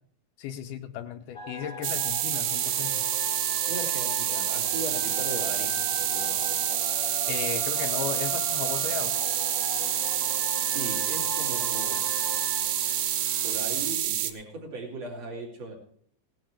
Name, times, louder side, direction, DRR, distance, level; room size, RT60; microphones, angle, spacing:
voice 1, 0.4-3.0 7.3-9.2, left 9 dB, 80° left, 8 dB, 2.1 m, -35 dB
sound 1, 1.3-13.9, left 3 dB, 40° left, 0.8 m, -40 dB
sound 2, 1.8-14.3, right 12 dB, 75° right, 1.9 m, -28 dB
Domestic sounds home sounds, 2.2-14.0, equal, 30° right, 0.9 m, -41 dB
voice 2, 3.7-6.6 10.6-12.0 13.4-15.7, right 2 dB, 45° right, -2 dB, 3.7 m, -38 dB
17.5 x 11.5 x 3.3 m, 0.63 s
omnidirectional pair, 4.1 m